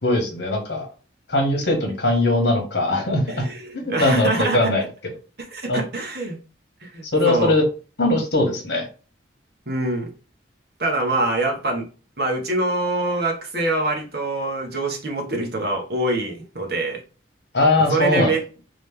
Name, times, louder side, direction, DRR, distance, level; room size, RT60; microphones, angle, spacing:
voice 1, 0.0-0.9 1.3-3.4 3.7-4.8 5.7-5.8 7.1-7.6 8.0-8.9 17.5-18.3, left 2 dB, 60° left, 1.5 m, -20 dB
voice 2, 3.3-4.7 5.5-6.4 6.8-7.6 9.7-10.1 10.8-11.8 12.2-17.0 17.8-18.4, right 2 dB, 55° right, 1.3 m, -24 dB
3.8 x 3.3 x 3.6 m
head